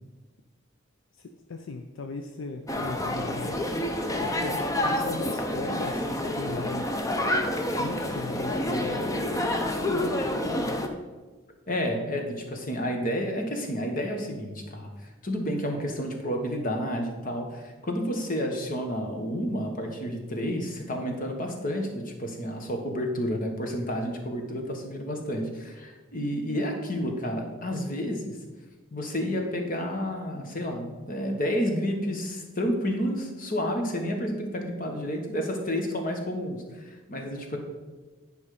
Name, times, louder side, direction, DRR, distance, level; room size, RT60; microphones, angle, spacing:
voice 1, 1.2-3.8 4.1-7.2 7.7-10.8, left 3 dB, 70° left, 5 dB, 0.5 m, -38 dB
sound 1, 2.7-10.9, left 1 dB, 15° left, 0.7 m, -28 dB
voice 2, 11.7-28.4 28.9-37.6, equal, 45° left, 3 dB, 1.3 m, -30 dB
9.9 x 5.3 x 4.9 m, 1.3 s
head